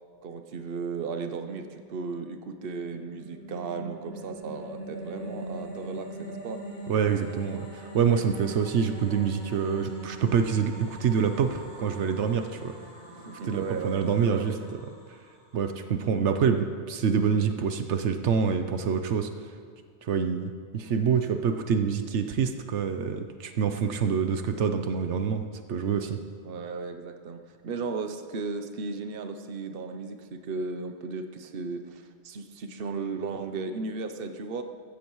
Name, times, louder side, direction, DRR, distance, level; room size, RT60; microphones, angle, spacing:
voice 1, 0.2-6.6 13.1-14.7 26.4-34.6, right 4 dB, 55° right, 7 dB, 1.0 m, -35 dB
sound 1, 2.7-15.9, right 1 dB, 45° left, 2.2 m, -42 dB
voice 2, 6.9-12.7 13.4-14.5 15.5-19.3 20.0-25.4 25.7-26.2, right 6 dB, 80° right, 7 dB, 1.1 m, -26 dB
15.0 x 14.5 x 3.1 m, 2.1 s
omnidirectional pair, 1.2 m